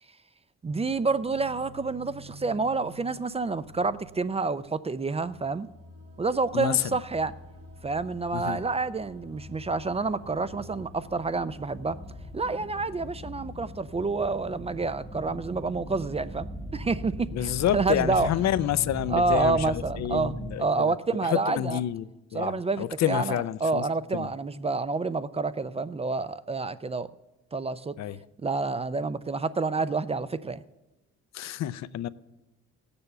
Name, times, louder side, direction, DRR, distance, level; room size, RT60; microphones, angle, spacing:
voice 1, 0.6-5.7 6.2-7.3 7.8-12.0 12.3-18.3 19.1-21.8 22.3-27.1 27.5-27.9 28.4-30.6, right 3 dB, 20° right, 0.4 m, -28 dB
sound 1, 0.7-13.2, left 1 dB, 90° right, 3.1 m, -49 dB
voice 2, 6.5-7.0 8.3-8.6 17.3-20.9 21.2-23.9 24.1-24.3 28.0-28.2 31.3-32.1, left 12 dB, 60° left, 0.5 m, -29 dB
sound 2, 7.3-20.6, equal, 5° left, 0.8 m, -40 dB
16.0 x 6.9 x 6.8 m
cardioid pair, 90°, 30 cm